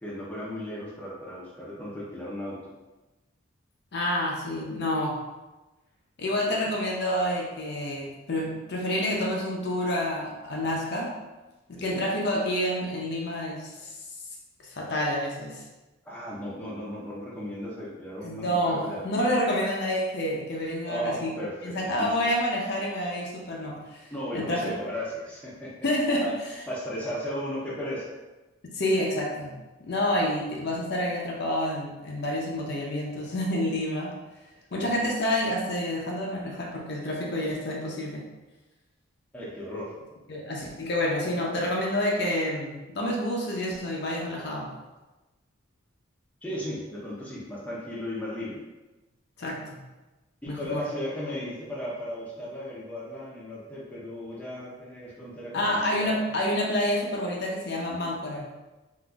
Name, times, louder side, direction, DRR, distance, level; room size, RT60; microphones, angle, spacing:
voice 1, 0.0-2.7 11.8-12.0 16.0-19.0 20.9-22.1 24.1-25.7 26.2-26.3 26.7-28.1 34.7-35.0 39.3-39.9 46.4-48.6 50.4-56.1, equal, 5° left, -7 dB, 0.6 m, -35 dB
voice 2, 3.9-5.2 6.2-11.2 11.7-13.9 14.6-15.6 18.2-21.3 21.6-24.9 25.8-26.2 28.6-34.1 34.7-38.3 40.3-44.7 49.4-49.8 50.5-50.8 55.5-58.5, left 1 dB, 50° left, -2 dB, 0.5 m, -28 dB
3.8 x 2.5 x 2.3 m, 1.1 s
head